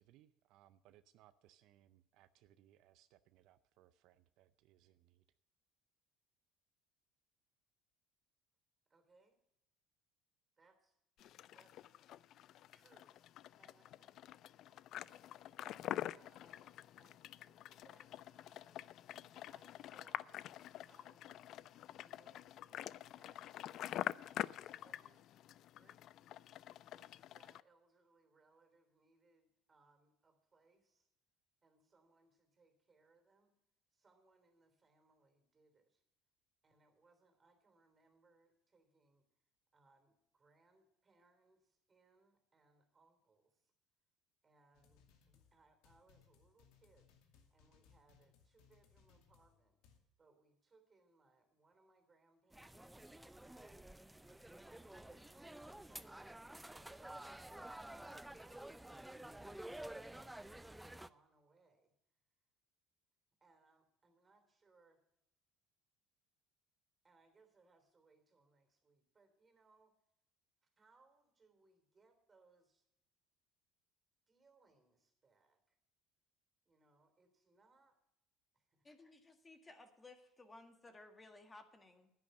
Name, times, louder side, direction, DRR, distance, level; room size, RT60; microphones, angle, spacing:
voice 1, 0.0-5.2, right 13 dB, 70° right, 12 dB, 0.5 m, -68 dB
voice 2, 8.9-9.4 10.6-11.0 11.5-12.4 12.7-13.3 13.6-14.1 14.7-18.9 19.5-21.6 22.0-25.4 25.7-26.1 26.9-31.1 31.6-33.5 33.9-36.0 36.6-39.3 39.7-43.7 44.4-47.1 47.5-49.8 50.2-53.1 53.6-54.2 54.8-56.2 56.6-59.1 59.8-61.9 63.4-65.0 67.0-69.9 70.6-72.9 74.3-75.8 76.7-78.0 78.5-78.9, right 3 dB, 25° right, 7 dB, 3.3 m, -72 dB
sound 1, 11.2-27.6, left 12 dB, 60° left, 0.4 m, -47 dB
sound 2, 44.7-50.0, left 6 dB, 75° left, 2.1 m, -70 dB
sound 3, 52.5-61.1, right 1 dB, 5° right, 0.5 m, -51 dB
voice 3, 78.8-82.1, left 2 dB, 20° left, 6 dB, 1.7 m, -58 dB
10.5 x 10.0 x 6.4 m, 0.82 s
supercardioid pair, 95°, 0 cm